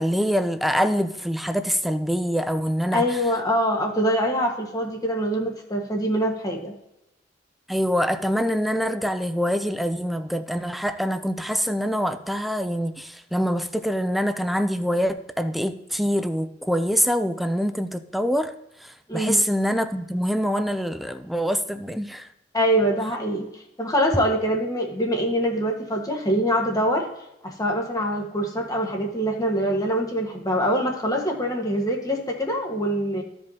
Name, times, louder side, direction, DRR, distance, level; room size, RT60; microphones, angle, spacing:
voice 1, 0.0-3.0 7.7-18.5 18.8-22.3, equal, ahead, 0.4 m, -25 dB
voice 2, 2.9-6.7 19.1-19.4 22.5-27.1 27.4-33.2, equal, 20° left, 1.4 m, -24 dB
14.5 x 5.3 x 2.8 m
head